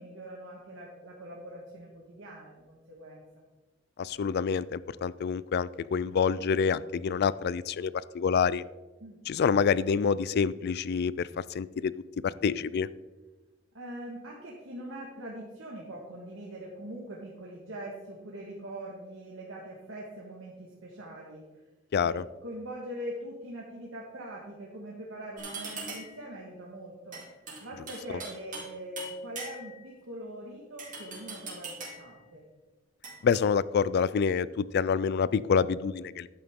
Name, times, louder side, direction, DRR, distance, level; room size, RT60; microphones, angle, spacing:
voice 1, 0.0-3.4 9.0-9.2 13.7-21.4 22.0-27.2 27.6-32.4, right 1 dB, 75° right, -3 dB, 1.6 m, -42 dB
voice 2, 4.0-8.6 9.3-11.9 12.2-12.9 21.9-22.2 33.2-36.3, left 6 dB, 55° left, 19 dB, 0.3 m, -27 dB
sound 1, 25.4-26.2 27.1-28.7 29.0-29.8 30.8-32.1 33.0-33.4, right 3 dB, 40° right, 2.8 m, -41 dB
11.0 x 8.7 x 3.7 m, 1.2 s
head